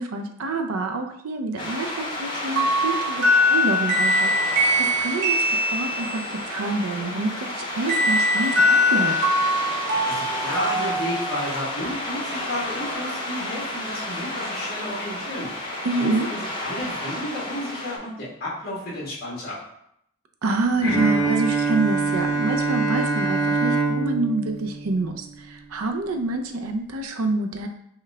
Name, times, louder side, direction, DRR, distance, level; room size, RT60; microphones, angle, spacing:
voice 1, 0.0-5.4 5.7-9.2 15.8-16.3 20.4-27.7, right 2 dB, 80° right, 5 dB, 0.5 m, -27 dB
sound 1, 1.6-18.0, left 1 dB, 20° left, 0.9 m, -31 dB
sound 2, 2.6-6.3 7.9-11.7, left 1 dB, 55° right, 1.1 m, -22 dB
voice 2, 10.0-15.5 16.0-19.6, left 1 dB, 45° left, -6 dB, 1.4 m, -32 dB
Bowed string instrument, 20.8-25.7, right 4 dB, 65° left, 0.9 m, -24 dB
5.5 x 2.3 x 3.3 m, 0.74 s
head